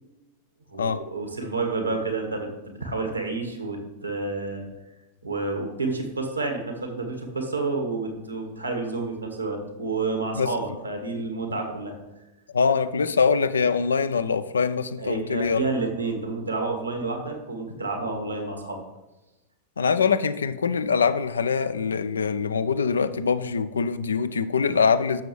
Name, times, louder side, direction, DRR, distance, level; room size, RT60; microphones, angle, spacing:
voice 1, 0.7-4.7 5.2-11.9 15.0-18.8, right 3 dB, 80° right, 3 dB, 1.6 m, -29 dB
voice 2, 12.5-15.6 19.8-25.2, left 5 dB, 70° left, 13 dB, 0.5 m, -23 dB
11.5 x 6.9 x 3.2 m, 1.0 s
figure-of-eight pair, 90°, 0 cm